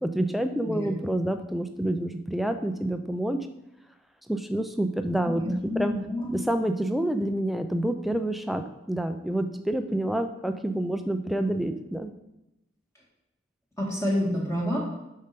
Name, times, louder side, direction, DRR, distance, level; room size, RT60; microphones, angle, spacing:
voice 1, 0.0-3.4 4.3-5.9 6.3-12.1, right 1 dB, ahead, 7 dB, 0.5 m, -28 dB
voice 2, 5.4-6.3 13.8-14.8, equal, 15° left, -4 dB, 1.8 m, -28 dB
6.9 x 5.6 x 6.7 m, 0.94 s
head